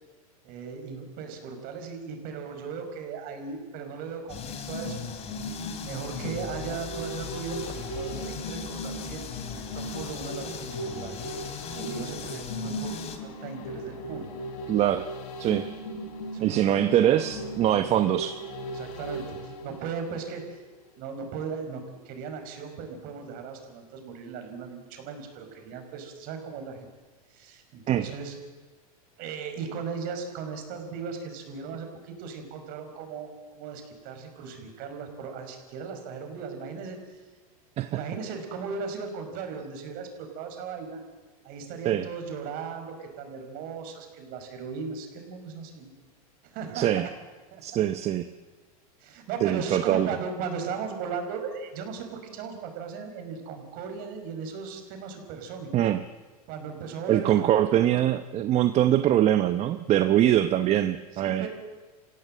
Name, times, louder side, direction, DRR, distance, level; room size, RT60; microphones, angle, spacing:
voice 1, 0.4-5.3 5.8-11.1 11.7-14.3 16.2-17.2 18.7-20.6 21.0-26.9 27.3-28.4 29.2-37.2 37.9-41.0 41.4-45.9 46.4-47.1 47.5-47.8 49.0-55.7 56.5-57.9 61.2-61.5, right 5 dB, 50° right, 5 dB, 5.4 m, -37 dB
sound 1, 4.3-13.2, left 7 dB, 35° left, 2.9 m, -39 dB
sound 2, 4.4-20.6 21.0-21.1, equal, 65° left, 4.5 m, -38 dB
voice 2, 14.7-15.1 15.4-15.7 16.4-18.4 27.9-28.1 37.8-38.0 41.8-42.1 46.7-47.1 47.6-48.3 49.4-50.2 55.7-56.0 57.1-61.5, right 12 dB, 35° right, 10 dB, 0.9 m, -23 dB
29.0 x 16.5 x 7.6 m, 1.3 s
supercardioid pair, 120°, 19 cm